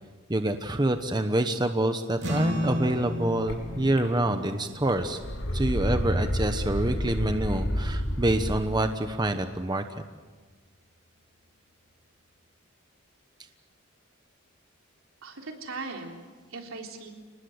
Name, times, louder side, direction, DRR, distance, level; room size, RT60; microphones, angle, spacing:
voice 1, 0.3-5.2 5.5-9.8, right 1 dB, 20° right, 7 dB, 1.0 m, -26 dB
sound 1, 2.2-8.8, left 1 dB, 55° right, 3.6 m, -36 dB
sound 2, 3.5-3.6 4.0-4.5 4.8-8.8, equal, 80° left, 4.5 m, -29 dB
voice 2, 15.2-17.1, right 3 dB, 75° right, 2 dB, 3.8 m, -39 dB
29.5 x 19.5 x 8.1 m, 1.4 s
head